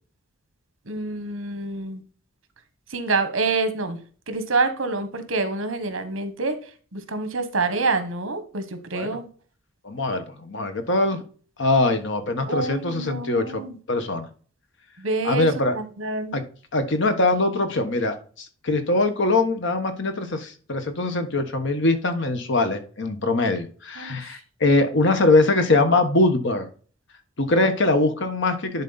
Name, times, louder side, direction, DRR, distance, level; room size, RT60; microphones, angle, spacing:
voice 1, 0.9-2.0 2.9-4.0 4.3-6.6 6.9-9.3 12.4-13.8 15.0-16.4 24.0-24.4, right 3 dB, 70° right, 9 dB, 1.3 m, -27 dB
voice 2, 9.8-11.2 11.6-13.6 13.9-14.3 15.2-15.7 16.3-16.4 16.7-26.7 27.4-28.8, left 2 dB, 60° left, 8 dB, 1.2 m, -22 dB
10.5 x 4.1 x 4.1 m, 0.40 s
head